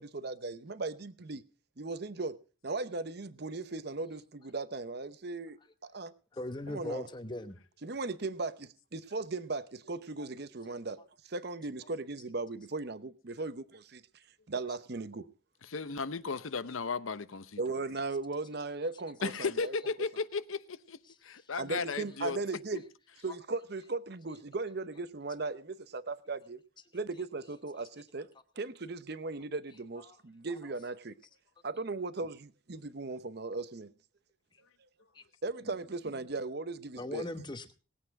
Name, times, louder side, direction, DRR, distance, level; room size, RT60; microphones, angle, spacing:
voice 1, 0.0-1.4 1.8-2.4 2.6-6.1 6.7-7.1 7.8-11.0 11.2-15.3 17.6-19.8 21.6-22.8 23.2-26.6 26.9-28.3 28.6-31.1 31.6-33.9 35.4-37.2, right 3 dB, 55° right, 0.8 m, -37 dB
voice 2, 6.3-7.6 30.1-30.2 35.1-35.2 37.0-37.7, left 1 dB, 20° left, 1.0 m, -39 dB
voice 3, 15.6-17.6 19.2-22.4 22.7-22.8, left 4 dB, 85° left, 0.8 m, -35 dB
19.0 x 8.5 x 4.7 m
head